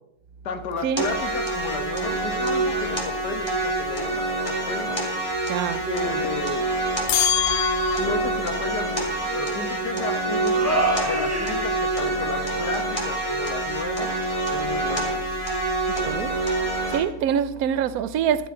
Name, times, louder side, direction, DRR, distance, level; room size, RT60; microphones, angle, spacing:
voice 1, 0.4-5.0 5.9-6.7 7.9-14.1 14.4-15.2, left 4 dB, 90° left, 2.0 m, -33 dB
sound 1, 1.0-17.0, right 2 dB, 20° left, 3.0 m, -26 dB
voice 2, 5.5-5.9 15.9-16.3 16.9-18.5, right 8 dB, 70° right, 1.2 m, -25 dB
sound 2, 7.1-8.5, left 10 dB, 65° left, 0.6 m, -24 dB
sound 3, 7.8-8.1 8.7-9.8 10.5-12.0, right 1 dB, 10° right, 1.3 m, -28 dB
15.0 x 12.0 x 3.9 m
omnidirectional pair, 1.7 m